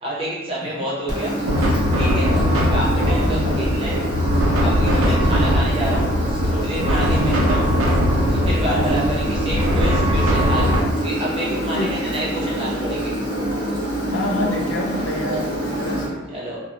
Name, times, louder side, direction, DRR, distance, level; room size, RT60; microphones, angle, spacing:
voice 1, 0.0-1.3 1.9-2.3 2.7-4.0 4.6-7.7 8.2-10.8 11.0-13.2 16.3-16.6, equal, 25° right, -6 dB, 0.7 m, -28 dB
Engine, 1.1-16.1, right 1 dB, 40° left, 0.9 m, -26 dB
sound 1, 1.5-10.8, equal, 90° right, 0.5 m, -20 dB
voice 2, 2.3-2.7 3.2-3.6 4.9-5.4 7.0-7.4 8.6-9.1 11.7-12.1 14.1-16.2, left 1 dB, 70° left, 0 dB, 0.4 m, -28 dB
2.4 x 2.0 x 2.9 m, 1.2 s
head